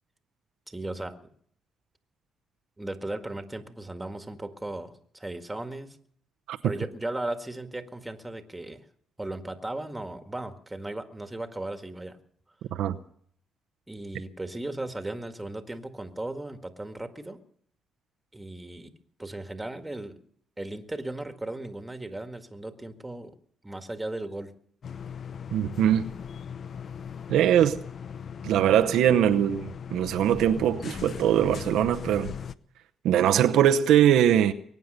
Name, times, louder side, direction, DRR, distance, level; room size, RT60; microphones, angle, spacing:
voice 1, 0.7-1.3 2.8-6.0 6.6-8.8 9.2-12.2 13.9-17.4 18.3-18.9 19.2-20.2 20.6-23.4 23.6-24.5, right 2 dB, 10° right, 1.8 m, -36 dB
sound 1, 24.8-32.5, left 7 dB, 55° left, 0.7 m, -39 dB
voice 2, 25.5-26.1 27.3-27.8 28.4-32.3 33.0-34.5, right 10 dB, 85° right, 0.8 m, -22 dB
22.0 x 9.5 x 6.7 m
cardioid pair, 90°, 0 cm